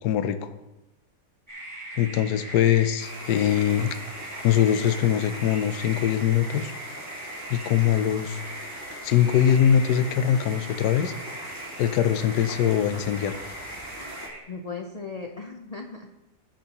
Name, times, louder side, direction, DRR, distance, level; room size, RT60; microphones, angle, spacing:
voice 1, 0.0-0.5 1.9-4.0 4.4-6.7 7.5-8.4 9.0-11.1 11.8-13.4, left 10 dB, 75° left, 10 dB, 1.3 m, -22 dB
sound 1, 1.5-14.4, right 1 dB, 30° right, 3.8 m, -40 dB
sound 2, 3.0-14.3, equal, 10° right, 2.1 m, -41 dB
voice 2, 14.0-16.1, left 4 dB, 35° left, 2 dB, 0.6 m, -38 dB
18.5 x 7.4 x 3.0 m, 0.99 s
omnidirectional pair, 1.8 m